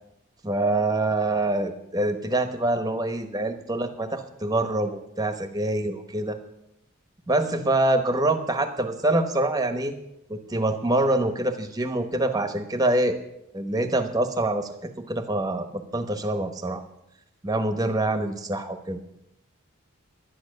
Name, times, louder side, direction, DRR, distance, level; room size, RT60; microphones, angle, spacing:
voice 1, 0.4-6.4 7.3-10.0 10.3-13.2 13.5-14.7 15.1-16.8 17.4-19.0, right 2 dB, 20° right, 8 dB, 1.1 m, -25 dB
11.5 x 10.5 x 6.6 m, 0.82 s
head